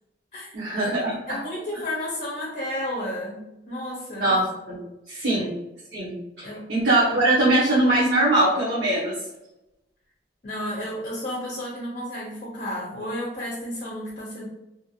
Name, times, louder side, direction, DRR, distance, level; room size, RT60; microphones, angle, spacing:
voice 1, 0.5-1.4 4.2-4.8 5.1-5.5 5.9-9.1, right 1 dB, 80° right, -8 dB, 0.9 m, -22 dB
voice 2, 1.3-4.4 5.3-5.4 6.4-6.7 10.4-14.5, left 1 dB, 45° left, -4 dB, 0.6 m, -32 dB
2.8 x 2.5 x 2.7 m, 0.93 s
head